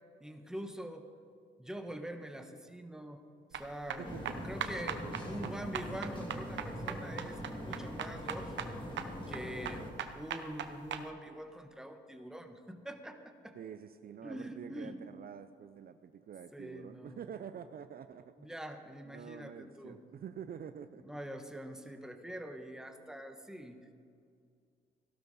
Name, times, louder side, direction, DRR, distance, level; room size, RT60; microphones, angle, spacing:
voice 1, 0.2-1.1 1.6-3.2 3.5-4.1 4.4-13.6 14.2-15.0 16.5-17.3 18.4-20.0 21.0-23.9, right 1 dB, 5° right, 6 dB, 1.2 m, -45 dB
sound 1, 3.5-11.0, right 8 dB, 65° right, 1.0 m, -41 dB
sound 2, 4.0-9.9, equal, 25° left, 2.8 m, -42 dB
voice 2, 4.0-4.5 5.0-5.6 13.6-18.3 19.1-21.2, right 8 dB, 50° right, 11 dB, 0.5 m, -47 dB
16.0 x 12.5 x 4.2 m, 2.3 s
cardioid pair, 90°, 20 cm